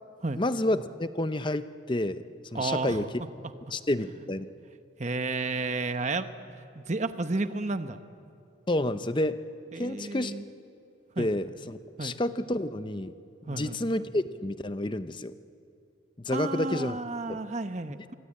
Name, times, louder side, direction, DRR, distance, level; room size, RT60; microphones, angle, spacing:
voice 1, 0.4-2.2 2.5-3.1 3.7-4.5 8.7-9.4 9.8-10.3 11.2-13.1 13.5-15.3 16.2-17.0 17.3-17.4, left 1 dB, 25° left, 12 dB, 0.6 m, -29 dB
voice 2, 2.5-3.1 4.0-4.1 5.0-8.0 9.7-10.4 11.2-11.3 12.0-12.2 13.5-13.8 16.3-18.1, right 3 dB, 35° right, 9 dB, 0.9 m, -32 dB
26.5 x 23.0 x 8.7 m, 2.6 s
head